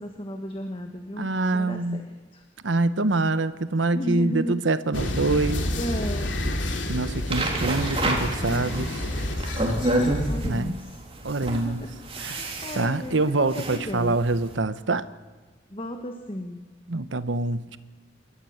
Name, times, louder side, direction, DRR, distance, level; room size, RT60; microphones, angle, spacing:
voice 1, 0.0-2.5 3.9-4.6 5.3-6.3 8.4-9.1 9.4-9.7 10.3-14.2 15.7-16.6, equal, 30° left, 4 dB, 1.5 m, -35 dB
voice 2, 1.2-2.1 2.6-5.6 6.9-8.9 10.4-10.7 11.2-11.8 12.2-12.5 12.7-15.1 16.9-17.8, right 2 dB, 85° right, 13 dB, 1.0 m, -25 dB
sound 1, 4.9-10.5, left 1 dB, 85° left, 2.7 m, -29 dB
sound 2, 7.3-14.5, right 1 dB, 30° right, 3.6 m, -29 dB
28.0 x 14.0 x 8.0 m, 1.4 s
head